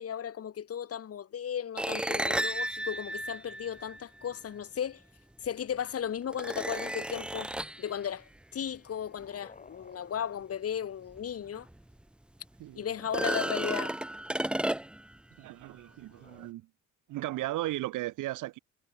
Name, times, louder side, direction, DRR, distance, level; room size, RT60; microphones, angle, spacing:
voice 1, 0.0-5.0 5.4-7.5 7.8-11.7 12.8-14.0, left 9 dB, 50° left, 1.8 m, -35 dB
sound 1, 1.8-4.3 5.5-5.6 6.3-7.9 11.2-11.3 11.7-11.8 13.0-15.1, right 1 dB, 5° right, 0.4 m, -33 dB
sound 2, 8.7-11.3 12.8-14.6 16.0-16.5, left 4 dB, 25° left, 2.2 m, -58 dB
voice 2, 12.6-12.9 13.2-13.5 15.4-16.7 17.1-18.6, right 16 dB, 90° right, 1.6 m, -36 dB
cardioid pair, 90°, 30 cm